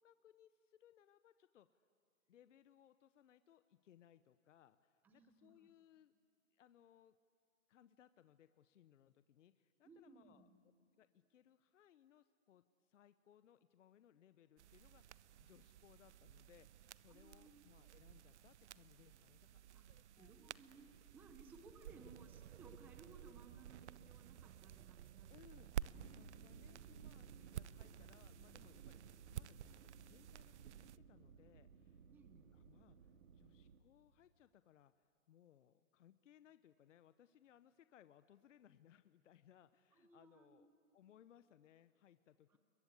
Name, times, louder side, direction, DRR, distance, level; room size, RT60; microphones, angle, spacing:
voice 1, 0.0-1.8 2.3-6.1 6.5-7.2 7.7-10.5 10.9-19.5 19.8-20.3 21.8-21.9 25.3-25.7 26.0-29.0 29.3-32.0 32.5-40.7 40.9-42.6, left 10 dB, 60° left, 12 dB, 0.9 m, -67 dB
voice 2, 5.0-5.7 9.8-10.6 17.1-17.6 19.7-19.8 20.1-20.9 21.1-25.9 32.1-32.5 40.0-40.7 42.5-42.6, right 3 dB, 5° right, 7 dB, 0.7 m, -62 dB
sound 1, 14.6-31.0, right 11 dB, 55° right, 0.6 m, -53 dB
sound 2, 25.9-33.8, right 6 dB, 75° right, 2.0 m, -60 dB
29.5 x 22.5 x 8.3 m, 2.3 s
hypercardioid pair, 165°, 41 cm